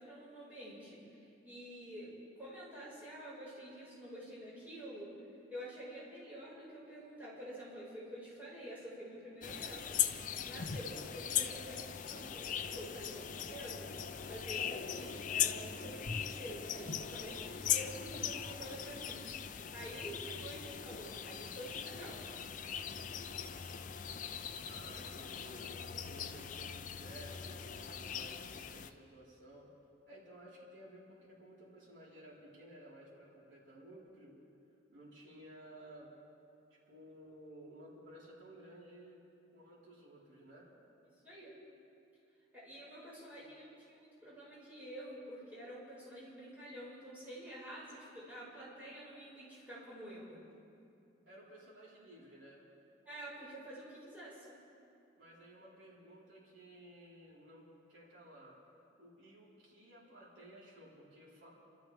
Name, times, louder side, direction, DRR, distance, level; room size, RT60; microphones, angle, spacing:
voice 1, 0.0-5.1 5.5-10.0 10.4-13.9 14.3-22.2 41.2-41.5 42.5-43.6 43.9-50.4 53.0-54.5, equal, 10° right, -9 dB, 5.0 m, -48 dB
sound 1, 9.4-28.9, left 9 dB, 45° left, 0.4 m, -40 dB
voice 2, 24.7-29.7 30.1-34.3 34.9-36.1 36.9-39.2 39.5-40.7 43.3-43.5 51.2-52.7 55.2-58.6 59.0-61.5, right 1 dB, 90° right, -6 dB, 4.0 m, -55 dB
29.5 x 13.0 x 3.4 m, 2.6 s
head